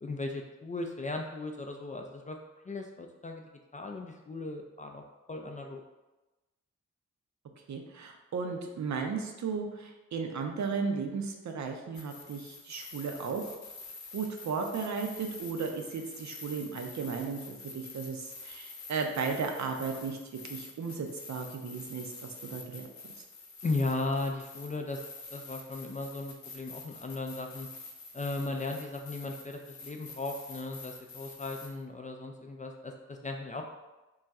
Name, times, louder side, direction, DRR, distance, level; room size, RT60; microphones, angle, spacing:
voice 1, 0.0-2.4 2.7-3.4 3.7-5.0 5.3-5.8 23.6-25.0 25.3-27.7 28.1-33.6, left 2 dB, 25° left, 2 dB, 0.3 m, -36 dB
voice 2, 7.7-13.6 14.1-20.2 20.5-22.8, right 5 dB, 65° right, 3 dB, 0.5 m, -35 dB
sound 1, 11.9-31.7, left 4 dB, 65° left, 0.6 m, -47 dB
2.3 x 2.3 x 4.0 m, 1.1 s
cardioid pair, 50°, 31 cm